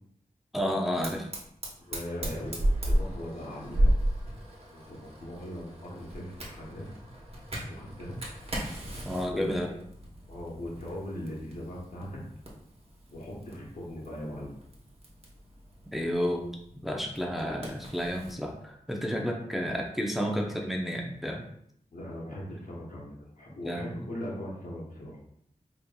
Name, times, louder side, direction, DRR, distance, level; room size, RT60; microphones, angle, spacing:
voice 1, 0.5-1.3 9.0-9.7 15.9-16.5 16.8-21.5 23.6-24.0, equal, ahead, 1 dB, 0.6 m, -31 dB
Fire, 1.0-18.4, right 1 dB, 45° right, 1.1 m, -35 dB
voice 2, 1.8-4.4 4.7-6.9 7.7-8.2 9.2-9.6 10.3-12.2 13.1-14.6 21.9-25.2, left 1 dB, 80° left, -5 dB, 1.1 m, -39 dB
5.0 x 2.9 x 2.3 m, 0.71 s
wide cardioid pair, 70°, 14 cm